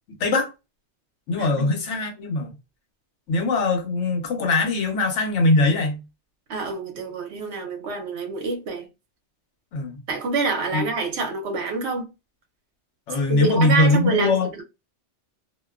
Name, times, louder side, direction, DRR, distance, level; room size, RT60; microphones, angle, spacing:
voice 1, 0.2-0.5 1.3-2.5 3.3-6.0 9.7-10.0 10.7-10.9 13.1-14.5, left 2 dB, 90° left, 1.1 m, -21 dB
voice 2, 1.4-1.8 6.5-8.9 10.1-12.1 13.3-14.6, right 4 dB, 70° right, 1.0 m, -27 dB
2.5 x 2.2 x 2.3 m
omnidirectional pair, 1.2 m